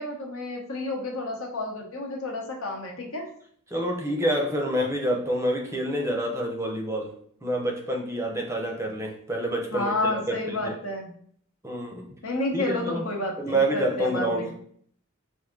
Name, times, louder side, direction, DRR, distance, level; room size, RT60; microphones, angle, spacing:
voice 1, 0.0-3.3 9.7-11.1 12.2-14.5, left 2 dB, 70° left, 1 dB, 1.0 m, -30 dB
voice 2, 3.7-7.1 7.4-10.7 11.6-12.1 12.5-13.0 13.4-14.5, right 1 dB, 15° right, 1 dB, 0.6 m, -27 dB
4.8 x 2.6 x 3.7 m, 0.62 s
head